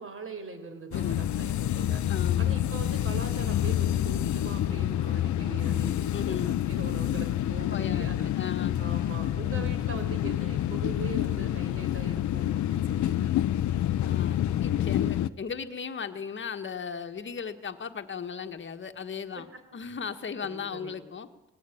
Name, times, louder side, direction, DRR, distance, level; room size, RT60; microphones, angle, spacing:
voice 1, 0.0-2.0 2.4-8.4 8.8-13.3 19.3-19.4 20.4-21.0, right 3 dB, 45° right, 7 dB, 4.7 m, -41 dB
sound 1, 0.9-15.3, left 12 dB, 70° left, 0.9 m, -28 dB
voice 2, 2.1-2.6 6.1-6.6 7.7-8.1 8.4-8.9 14.0-19.5 19.7-21.3, left 6 dB, 40° left, 7 dB, 1.7 m, -36 dB
20.0 x 18.0 x 8.8 m, 1.0 s
cardioid pair, 90°, 30 cm